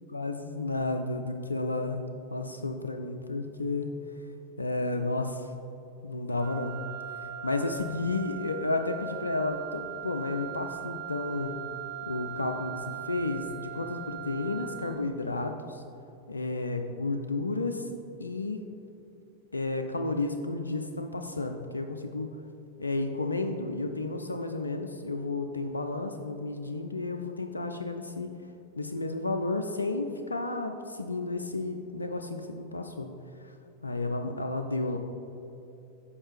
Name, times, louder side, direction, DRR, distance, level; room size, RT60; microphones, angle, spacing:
voice 1, 0.0-2.0 2.3-3.9 4.6-5.5 6.0-6.8 7.1-11.7 12.0-15.8 16.3-17.9 18.2-18.6 19.5-22.4 22.8-28.3 28.8-33.1 33.4-33.5 33.8-35.0, left 2 dB, 80° left, 6 dB, 0.3 m, -32 dB
Wind instrument woodwind instrument, 6.4-15.1, right 10 dB, 55° right, 1.4 m, -40 dB
7.0 x 4.9 x 3.3 m, 2.8 s
figure-of-eight pair, 90°, 0 cm